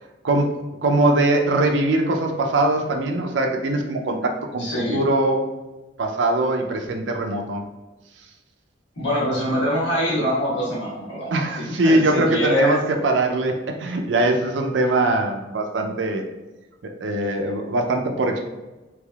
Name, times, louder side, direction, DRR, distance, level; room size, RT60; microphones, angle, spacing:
voice 1, 0.2-4.7 4.9-5.4 6.0-7.6 11.3-16.2 16.8-18.4, right 2 dB, 90° right, 3 dB, 0.5 m, -22 dB
voice 2, 4.6-5.0 9.0-12.8, equal, 90° left, -6 dB, 1.4 m, -24 dB
3.3 x 3.1 x 2.3 m, 1.1 s
head